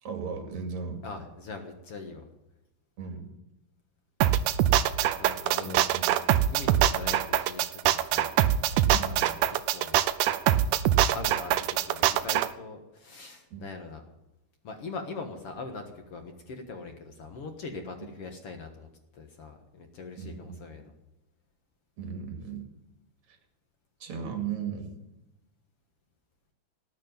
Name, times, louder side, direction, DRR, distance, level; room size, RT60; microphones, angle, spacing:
voice 1, 0.0-1.0 3.0-3.3 5.6-6.2 8.9-9.2 13.5-13.7 20.2-20.6 22.0-22.7 24.0-25.0, right 6 dB, 50° right, 5 dB, 3.2 m, -36 dB
voice 2, 1.0-2.3 5.2-5.9 6.5-8.3 9.1-10.0 11.1-14.0 14.6-20.9, left 4 dB, 55° left, 5 dB, 1.7 m, -41 dB
sound 1, 4.2-12.5, right 12 dB, 80° right, 1.9 m, -23 dB
18.5 x 7.6 x 9.4 m, 0.94 s
omnidirectional pair, 4.5 m